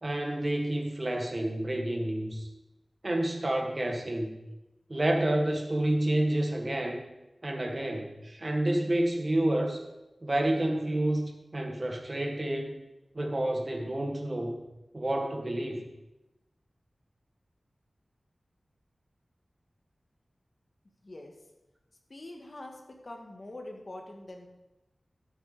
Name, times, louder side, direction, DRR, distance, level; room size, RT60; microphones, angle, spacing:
voice 1, 0.0-2.5 3.0-4.4 4.9-7.0 7.4-9.8 10.2-12.8 13.1-14.7 14.9-15.8, right 1 dB, 35° right, 2 dB, 1.8 m, -29 dB
voice 2, 22.1-24.5, left 1 dB, 45° left, 2 dB, 2.0 m, -44 dB
13.0 x 8.0 x 5.2 m, 0.99 s
wide cardioid pair, 85°, 0 cm